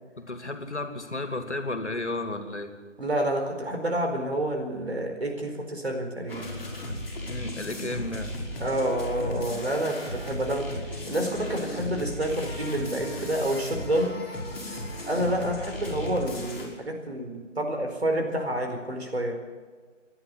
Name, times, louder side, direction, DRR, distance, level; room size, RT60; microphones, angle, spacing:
voice 1, 0.2-2.7 7.3-8.3, left 2 dB, 65° left, 7 dB, 2.7 m, -33 dB
voice 2, 3.0-6.5 8.6-14.2 15.1-19.4, right 1 dB, 55° right, 3 dB, 4.6 m, -29 dB
sound 1, 6.3-16.6, left 1 dB, 5° left, 2.5 m, -35 dB
27.5 x 11.0 x 8.4 m, 1.4 s
figure-of-eight pair, 160°, 37 cm